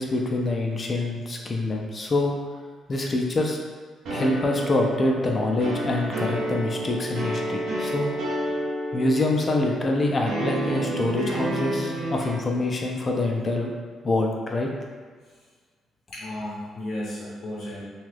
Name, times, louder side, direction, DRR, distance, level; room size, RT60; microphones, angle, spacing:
voice 1, 0.0-2.3 2.9-3.6 4.1-8.1 8.9-13.7 14.0-14.7, left 2 dB, 35° left, 0 dB, 0.5 m, -25 dB
sound 1, 4.1-12.3, right 1 dB, 75° right, 0.7 m, -30 dB
voice 2, 16.1-17.8, left 1 dB, 65° left, -6 dB, 0.7 m, -33 dB
2.7 x 2.3 x 3.2 m, 1.5 s
cardioid pair, 90°, 0 cm